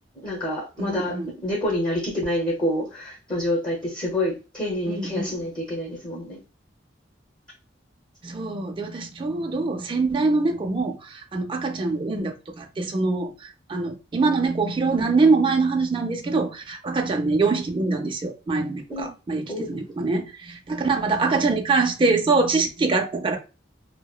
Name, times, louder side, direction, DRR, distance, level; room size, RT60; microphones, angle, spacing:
voice 1, 0.1-6.4 11.9-12.0 18.9-19.1 19.5-19.8, left 1 dB, 25° left, 0.9 m, -28 dB
voice 2, 0.8-1.3 4.8-5.3 8.2-23.4, right 3 dB, 30° right, 0.4 m, -24 dB
2.8 x 2.0 x 2.2 m
head